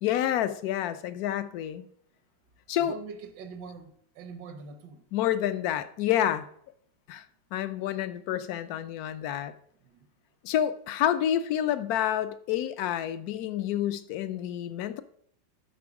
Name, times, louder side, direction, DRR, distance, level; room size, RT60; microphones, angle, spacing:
voice 1, 0.0-1.8 2.7-2.9 5.1-6.5 7.1-7.3 7.5-9.5 10.4-15.0, left 11 dB, 70° left, 1.0 m, -28 dB
voice 2, 2.8-5.1 9.8-10.1, right 5 dB, 75° right, 1.5 m, -43 dB
12.0 x 4.6 x 4.7 m
omnidirectional pair, 1.9 m